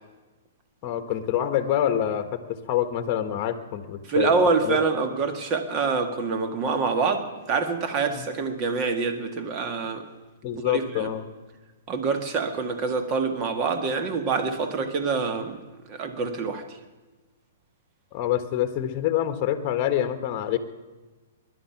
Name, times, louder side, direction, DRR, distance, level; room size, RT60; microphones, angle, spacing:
voice 1, 0.8-4.8 8.1-8.3 10.4-11.3 18.1-20.6, left 11 dB, 35° left, 9 dB, 1.3 m, -26 dB
voice 2, 4.1-10.0 10.7-11.1 11.9-15.6 15.9-16.8, right 4 dB, 30° right, 7 dB, 1.8 m, -26 dB
21.0 x 11.0 x 5.9 m, 1.2 s
hypercardioid pair, 145°, 0 cm